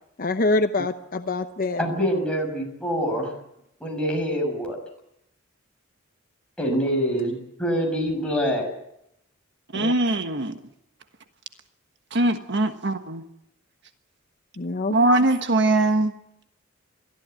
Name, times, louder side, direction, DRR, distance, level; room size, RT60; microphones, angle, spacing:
voice 1, 0.2-1.8 9.7-9.9 14.6-15.0, left 2 dB, 45° left, 8 dB, 0.8 m, -25 dB
voice 2, 1.8-3.3 3.8-4.8 6.6-8.7, equal, 5° left, 0 dB, 6.6 m, -25 dB
voice 3, 9.7-10.6 12.1-13.2 14.9-16.1, right 2 dB, 60° right, 7 dB, 1.4 m, -21 dB
22.5 x 14.5 x 9.3 m, 0.80 s
head